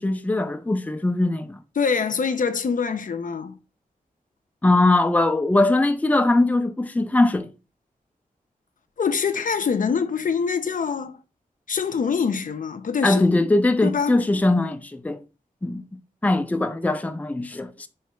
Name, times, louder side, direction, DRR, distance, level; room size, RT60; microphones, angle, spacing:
voice 1, 0.0-1.6 4.6-7.5 13.0-15.2 15.6-17.9, left 2 dB, 10° left, 0.4 m, -21 dB
voice 2, 1.8-3.6 9.0-11.2 11.7-13.3 13.8-14.2, left 6 dB, 65° left, 0.5 m, -24 dB
3.1 x 2.8 x 4.3 m
wide cardioid pair, 80°, 15 cm